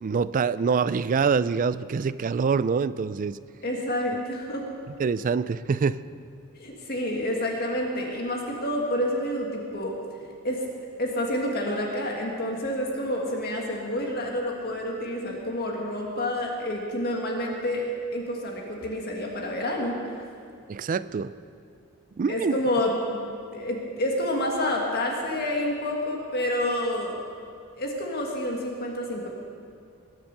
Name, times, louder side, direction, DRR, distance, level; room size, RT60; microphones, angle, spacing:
voice 1, 0.0-3.4 5.0-6.0 20.7-21.3 22.2-22.6, right 5 dB, 40° right, 15 dB, 0.3 m, -25 dB
voice 2, 3.6-4.6 6.6-10.0 10.4-10.6 11.0-20.0 22.3-23.2 23.5-27.2 27.8-29.3, left 1 dB, 45° left, 0 dB, 1.8 m, -28 dB
21.0 x 7.1 x 6.6 m, 2.4 s
head